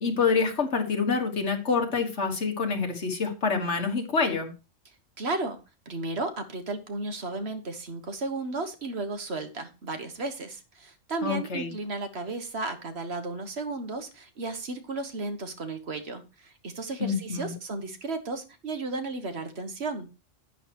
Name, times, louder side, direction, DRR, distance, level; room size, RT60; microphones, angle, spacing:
voice 1, 0.0-4.5 11.2-11.7 17.0-17.6, left 5 dB, 65° left, 4 dB, 2.0 m, -27 dB
voice 2, 5.2-5.6 5.8-20.1, right 3 dB, 55° right, 7 dB, 1.5 m, -34 dB
10.5 x 9.0 x 3.0 m, 0.29 s
omnidirectional pair, 1.3 m